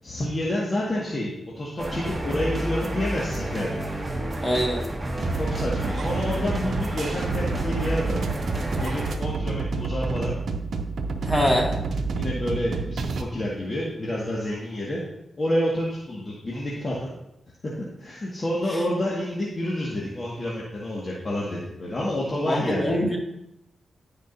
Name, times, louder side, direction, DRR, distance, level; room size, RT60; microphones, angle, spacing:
voice 1, 0.0-3.8 5.3-8.2 8.8-10.4 12.2-15.0 15.4-17.2 17.6-17.7 18.0-23.0, left 1 dB, 40° left, -5 dB, 1.8 m, -29 dB
sound 1, 1.8-9.2, right 1 dB, 25° right, 1.5 m, -31 dB
voice 2, 4.4-4.9 11.2-11.7 22.5-23.2, equal, 15° left, -1 dB, 2.2 m, -23 dB
sound 2, 5.2-13.2, right 4 dB, 75° right, 0.7 m, -29 dB
14.0 x 5.0 x 2.7 m, 0.85 s
cardioid pair, 60°, 0 cm